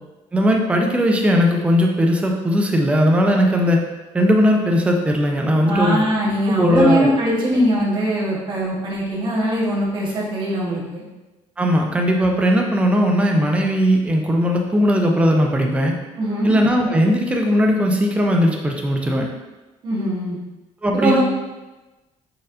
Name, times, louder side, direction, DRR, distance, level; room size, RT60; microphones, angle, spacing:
voice 1, 0.3-3.8 4.1-6.0 6.5-7.1 11.6-16.0 16.4-19.3 20.8-21.2, equal, 10° right, 1 dB, 0.4 m, -18 dB
voice 2, 5.7-11.0 16.2-16.6 19.8-20.4 20.9-21.2, equal, 40° right, -6 dB, 1.0 m, -21 dB
4.1 x 3.9 x 2.5 m, 1.1 s
cardioid pair, 170°, 12 cm